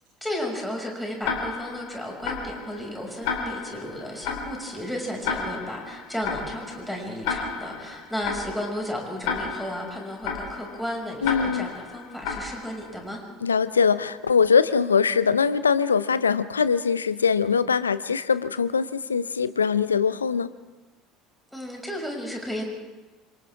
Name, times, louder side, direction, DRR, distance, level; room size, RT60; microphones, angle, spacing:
voice 1, 0.2-13.2 21.5-22.7, equal, ahead, 0 dB, 6.5 m, -33 dB
Tick-tock, 1.2-13.1, left 5 dB, 60° left, 3.6 m, -33 dB
voice 2, 11.2-11.7 13.4-20.5, left 6 dB, 85° left, 15 dB, 0.7 m, -22 dB
28.0 x 26.5 x 3.7 m, 1.2 s
figure-of-eight pair, 65°, 0 cm